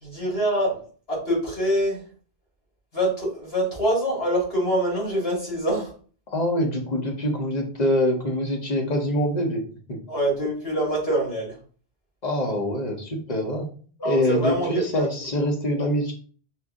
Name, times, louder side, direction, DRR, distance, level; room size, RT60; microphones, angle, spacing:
voice 1, 0.0-0.8 1.1-2.0 2.9-5.9 10.1-11.5 14.0-15.3, right 1 dB, 70° left, -4 dB, 2.5 m, -25 dB
voice 2, 6.3-9.6 9.9-10.0 12.2-13.7 14.0-16.1, equal, 45° left, 2 dB, 1.0 m, -24 dB
4.5 x 2.7 x 3.6 m, 0.43 s
omnidirectional pair, 1.1 m